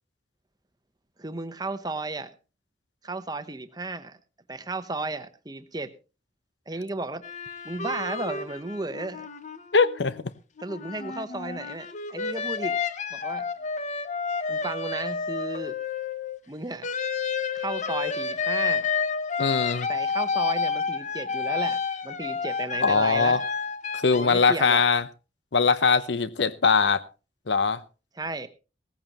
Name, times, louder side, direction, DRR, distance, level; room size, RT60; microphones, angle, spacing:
voice 1, 1.2-2.3 3.0-4.2 4.5-5.9 6.7-7.2 7.6-9.3 10.6-12.8 13.1-13.4 14.5-15.7 16.5-16.9 17.5-18.9 19.9-23.4 24.1-24.8 28.2-28.5, right 2 dB, 25° right, 0.9 m, -34 dB
sound 1, 7.2-10.2 10.6-16.4 16.8-24.3, left 5 dB, 45° left, 0.8 m, -30 dB
voice 2, 9.7-10.2 19.4-19.9 22.8-23.4 23.9-25.0 25.5-27.0 27.5-27.8, left 5 dB, 80° left, 0.8 m, -21 dB
17.5 x 14.5 x 3.0 m
head